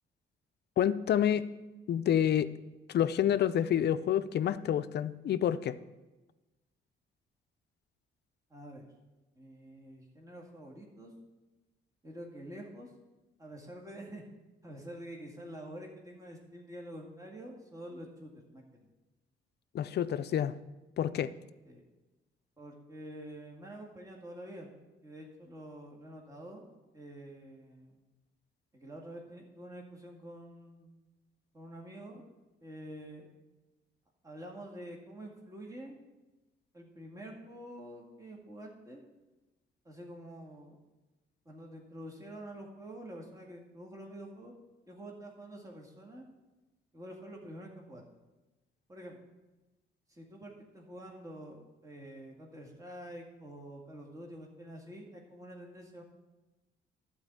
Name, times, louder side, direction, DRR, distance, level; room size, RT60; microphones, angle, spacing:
voice 1, 0.8-1.5 1.9-2.5 2.9-5.8 19.7-20.5 21.0-21.3, left 10 dB, 55° left, 13 dB, 0.5 m, -28 dB
voice 2, 8.5-8.9 9.4-11.1 12.0-12.9 13.4-14.3 14.6-18.9 21.7-21.8 22.6-24.8 25.0-26.6 26.9-28.0 28.7-31.0 31.5-32.2 32.6-33.3 34.2-36.0 36.7-39.0 39.8-40.8 41.5-44.5 44.9-46.3 46.9-48.0 48.9-49.2 50.1-56.0, right 1 dB, 15° right, 0 dB, 2.0 m, -47 dB
11.5 x 4.5 x 8.1 m, 1.1 s
cardioid pair, 90°, 20 cm